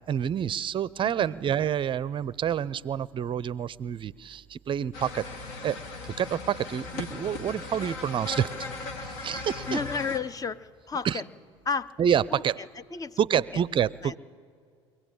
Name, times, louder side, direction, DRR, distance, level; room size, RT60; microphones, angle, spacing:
voice 1, 0.1-5.2 5.6-5.8 6.0-9.8 11.0-11.2 12.0-12.6 13.2-14.2, right 9 dB, 35° right, 21 dB, 0.5 m, -28 dB
voice 2, 1.0-1.4 9.7-11.2 11.7-11.9 12.3-12.4 12.9-13.6 14.0-14.2, left 5 dB, 25° left, 16 dB, 0.6 m, -32 dB
sound 1, 4.9-10.2, left 3 dB, 70° left, 2.0 m, -38 dB
24.0 x 17.0 x 8.9 m, 2.2 s
hypercardioid pair, 75°, 15 cm